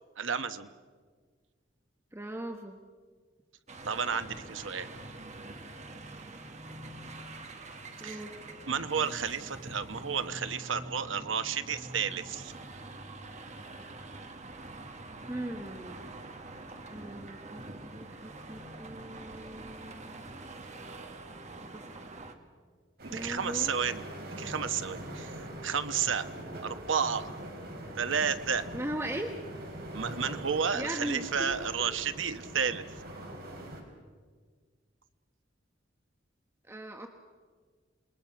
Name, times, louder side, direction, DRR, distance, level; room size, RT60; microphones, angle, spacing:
voice 1, 0.2-0.7 3.8-4.9 8.0-8.2 8.7-12.5 23.0-24.0 24.4-25.3 25.6-26.3 26.6-27.4 28.0-28.7 29.9-32.8, right 6 dB, 85° right, 10 dB, 1.1 m, -31 dB
voice 2, 2.1-2.8 8.0-8.4 15.3-16.1 16.9-20.3 21.6-21.8 23.1-23.8 28.7-29.3 30.7-31.5 36.7-37.1, right 1 dB, 15° right, 4 dB, 1.2 m, -39 dB
sound 1, 3.7-22.3, right 2 dB, 40° right, 1.8 m, -45 dB
sound 2, 23.0-33.8, right 1 dB, 55° right, 4.3 m, -43 dB
28.0 x 21.0 x 5.9 m, 1.5 s
head